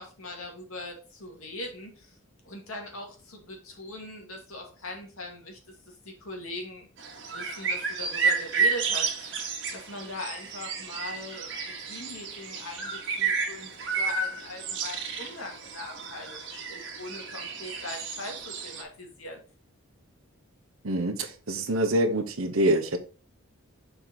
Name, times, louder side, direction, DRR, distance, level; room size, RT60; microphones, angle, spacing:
voice 1, 0.0-2.2 2.4-5.6 6.0-6.9 7.2-13.7 13.9-19.4, left 1 dB, 85° left, 2 dB, 2.2 m, -40 dB
sound 1, 7.0-18.8, right 5 dB, 55° right, 1.7 m, -31 dB
voice 2, 20.8-23.0, right 1 dB, 80° right, 6 dB, 1.1 m, -25 dB
6.6 x 4.5 x 4.2 m, 0.36 s
head